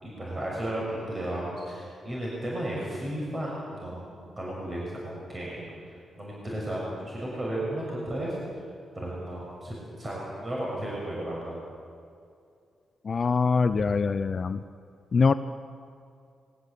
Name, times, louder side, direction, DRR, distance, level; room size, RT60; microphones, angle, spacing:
voice 1, 0.0-5.7 6.2-8.3 8.9-11.5 13.7-13.9, right 1 dB, 30° right, -4 dB, 6.7 m, -34 dB
voice 2, 13.0-14.6 15.1-15.3, left 4 dB, 45° left, 10 dB, 0.7 m, -23 dB
21.5 x 18.0 x 8.5 m, 2.4 s
cardioid pair, 80°, 0 cm